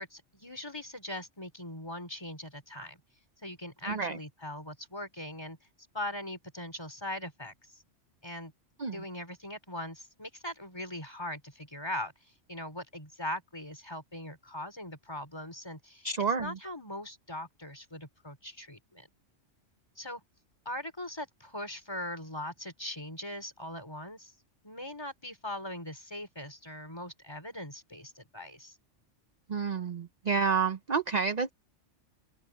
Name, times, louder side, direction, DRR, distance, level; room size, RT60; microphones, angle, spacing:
voice 1, 0.0-3.0 3.4-5.6 5.9-7.8 8.2-8.5 8.9-12.1 12.5-16.1 16.4-19.1 20.0-20.2 20.6-24.3 24.6-28.7, left 1 dB, 20° left, 4.7 m, -40 dB
voice 2, 3.9-4.2 8.8-9.0 16.0-16.5 29.5-31.5, right 5 dB, 40° right, 0.7 m, -29 dB
open air
omnidirectional pair, 1.3 m